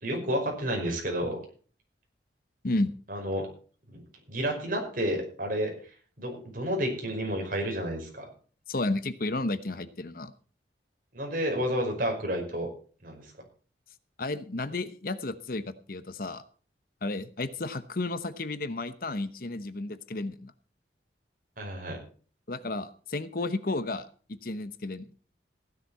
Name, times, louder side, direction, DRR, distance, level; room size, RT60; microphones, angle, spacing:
voice 1, 0.0-1.4 3.1-3.5 3.9-4.0 4.3-5.7 6.2-8.3 11.1-12.7 13.0-13.2 21.6-22.0, equal, 50° right, 2 dB, 5.4 m, -30 dB
voice 2, 8.7-10.3 14.2-16.4 17.0-20.5 22.5-25.0, left 2 dB, 55° left, 13 dB, 1.0 m, -32 dB
16.0 x 11.0 x 4.2 m, 0.40 s
head